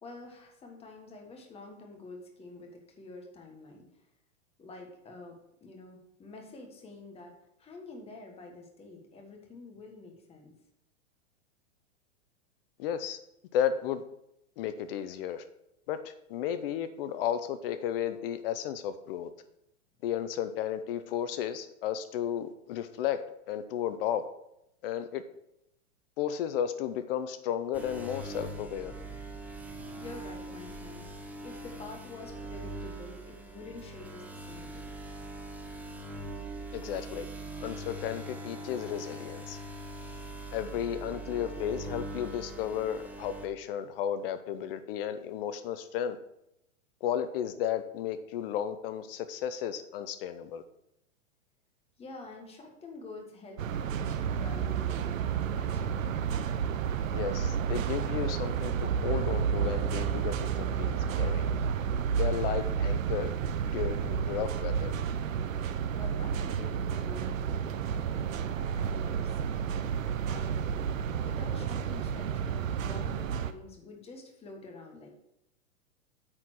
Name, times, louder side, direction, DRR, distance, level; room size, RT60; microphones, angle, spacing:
voice 1, 0.0-4.0 4.6-10.5 28.9-31.1 31.4-34.9 52.0-56.4 66.0-67.8 68.2-75.1, left 3 dB, 15° left, 2 dB, 1.5 m, -48 dB
voice 2, 12.8-13.2 13.5-14.0 14.6-15.4 15.9-19.3 20.0-23.2 23.5-24.2 24.8-25.2 26.2-28.9 36.7-37.3 37.6-39.6 40.5-46.2 47.0-50.6 57.1-61.5 62.2-63.3 63.6-65.0, left 9 dB, 45° left, 11 dB, 0.6 m, -33 dB
sound 1, 27.7-43.5, right 2 dB, 5° right, 0.7 m, -42 dB
sound 2, 53.6-73.5, right 7 dB, 90° right, 0.8 m, -31 dB
8.8 x 4.3 x 6.2 m, 0.82 s
hypercardioid pair, 135°, 38 cm